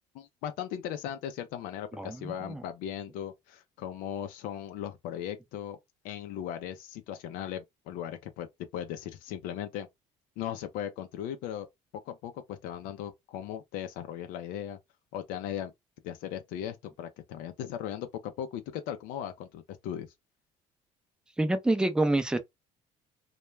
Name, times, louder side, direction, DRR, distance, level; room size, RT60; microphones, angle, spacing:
voice 1, 0.1-5.8 6.0-8.5 8.7-9.9 10.4-11.7 12.0-14.8 15.1-15.7 16.0-20.1, left 10 dB, 80° left, 0.5 m, -38 dB
voice 2, 2.0-2.6 21.4-22.4, right 2 dB, 5° right, 0.4 m, -27 dB
2.2 x 2.2 x 3.0 m
cardioid pair, 130°, 14 cm